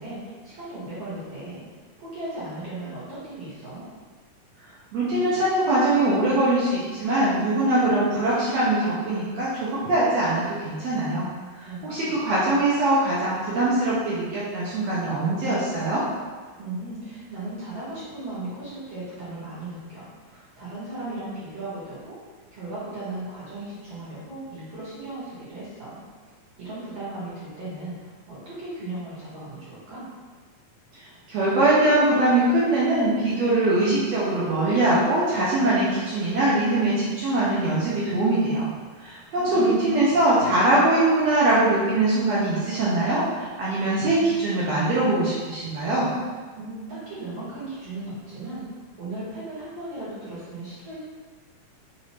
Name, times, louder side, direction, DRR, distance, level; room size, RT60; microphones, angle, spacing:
voice 1, 0.0-1.6 2.0-3.8 11.6-12.2 16.6-22.2 22.5-26.0 26.6-30.1 39.1-39.8 46.6-51.0, right 2 dB, 50° right, -11 dB, 2.3 m, -37 dB
voice 2, 4.9-11.3 11.6-16.0 31.3-38.7 39.0-46.1, right 2 dB, 70° right, -9 dB, 1.7 m, -22 dB
5.8 x 2.6 x 3.1 m, 1.4 s
omnidirectional pair, 3.7 m